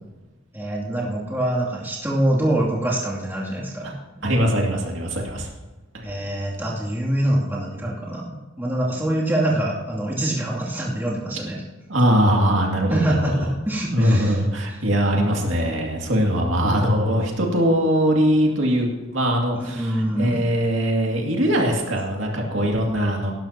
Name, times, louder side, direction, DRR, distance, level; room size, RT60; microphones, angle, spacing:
voice 1, 0.5-4.3 6.0-11.6 12.9-14.4 18.4-18.6 19.5-20.4, right 1 dB, 10° right, -6 dB, 2.6 m, -25 dB
voice 2, 4.2-5.5 5.9-6.1 11.9-13.4 13.9-23.3, equal, 65° right, -1 dB, 2.4 m, -21 dB
18.5 x 12.0 x 2.9 m, 1.2 s
head